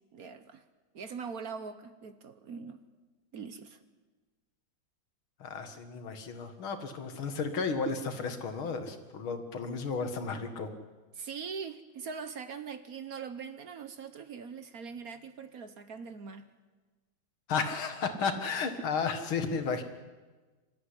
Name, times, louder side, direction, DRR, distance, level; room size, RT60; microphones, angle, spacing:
voice 1, 0.1-0.6 0.9-2.8 3.3-3.8 11.1-16.5, right 6 dB, 55° right, 10 dB, 1.3 m, -42 dB
voice 2, 5.4-10.7 17.5-19.8, left 5 dB, 90° left, 7 dB, 2.6 m, -33 dB
26.0 x 13.5 x 9.9 m, 1.3 s
omnidirectional pair, 2.2 m